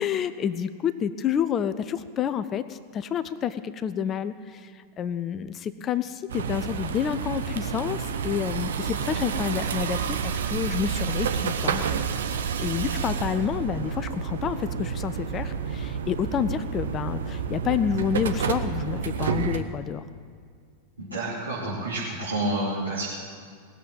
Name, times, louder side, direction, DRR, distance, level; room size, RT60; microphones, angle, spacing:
voice 1, 0.0-4.7 5.0-12.0 12.6-20.0, left 8 dB, 30° left, 13 dB, 0.6 m, -29 dB
sound 1, 6.3-19.6, right 7 dB, 65° right, 0.9 m, -29 dB
voice 2, 21.0-23.0, right 1 dB, 80° right, -9 dB, 3.1 m, -29 dB
19.5 x 7.5 x 8.2 m, 2.2 s
figure-of-eight pair, 90°, 0 cm